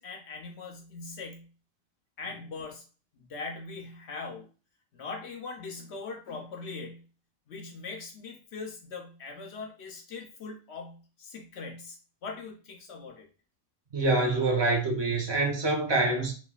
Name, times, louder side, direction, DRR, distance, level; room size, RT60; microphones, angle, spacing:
voice 1, 0.0-1.5 2.2-2.8 3.1-4.5 4.9-7.0 7.5-13.3, left 4 dB, 60° left, 0.8 m, -41 dB
voice 2, 13.9-16.3, right 2 dB, 25° right, 0.6 m, -26 dB
3.1 x 2.2 x 2.3 m
omnidirectional pair, 1.4 m